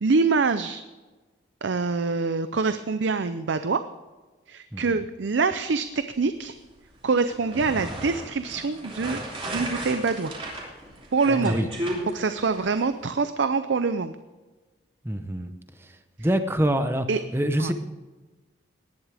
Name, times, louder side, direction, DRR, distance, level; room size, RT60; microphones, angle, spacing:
voice 1, 0.0-0.8 1.6-3.8 4.5-6.6 7.0-9.2 9.5-10.3 11.1-11.6 12.1-14.2 17.1-17.2 17.6-17.7, right 4 dB, 75° right, 11 dB, 0.6 m, -25 dB
sound 1, 7.3-12.8, right 1 dB, 30° right, 3.1 m, -34 dB
voice 2, 15.0-15.5 16.2-17.1 17.3-17.7, right 1 dB, 10° right, 8 dB, 0.8 m, -24 dB
18.5 x 11.0 x 3.5 m, 1.2 s
head